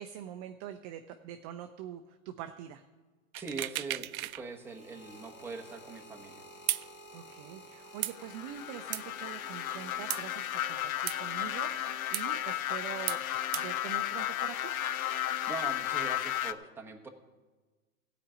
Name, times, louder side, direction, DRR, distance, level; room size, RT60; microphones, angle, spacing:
voice 1, 0.0-2.8 7.1-13.3 13.5-14.8, right 10 dB, 30° right, 7 dB, 0.5 m, -44 dB
sound 1, 3.3-4.4 4.8-4.9 6.7-6.9 8.0-8.1 8.9-9.0 10.1-10.2 11.1-11.2 12.1-12.3 13.1-13.2 13.5-13.7, right 14 dB, 85° right, 0.5 m, -34 dB
voice 2, 3.4-4.1 4.4-6.4 15.5-17.1, right 4 dB, 5° right, 0 dB, 1.1 m, -42 dB
sound 2, 4.2-11.0 11.9-12.2, equal, 25° left, 1.6 m, -52 dB
sound 3, 8.2-16.5, left 12 dB, 80° left, 0.8 m, -34 dB
15.0 x 5.1 x 8.7 m, 1.3 s
hypercardioid pair, 130°, 41 cm